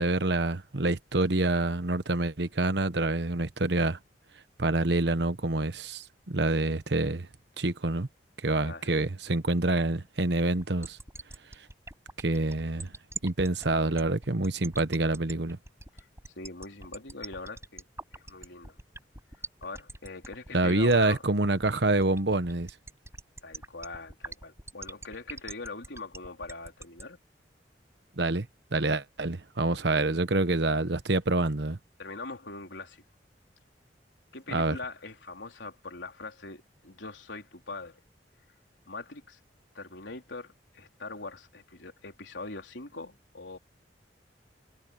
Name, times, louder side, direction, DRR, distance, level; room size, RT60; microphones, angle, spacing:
voice 1, 0.0-4.0 4.6-7.3 7.6-8.1 8.4-11.0 12.2-12.9 13.2-15.6 20.5-22.7 28.2-31.8 34.5-34.8, right 2 dB, 65° right, 1.2 m, -27 dB
sound 1, 10.6-27.0, right 3 dB, 15° right, 7.7 m, -42 dB
voice 2, 16.4-17.9 18.1-18.8 19.6-21.2 23.4-27.2 29.7-29.9 32.0-33.0 34.3-38.0 38.9-39.4 39.7-43.6, left 3 dB, 90° left, 3.8 m, -42 dB
head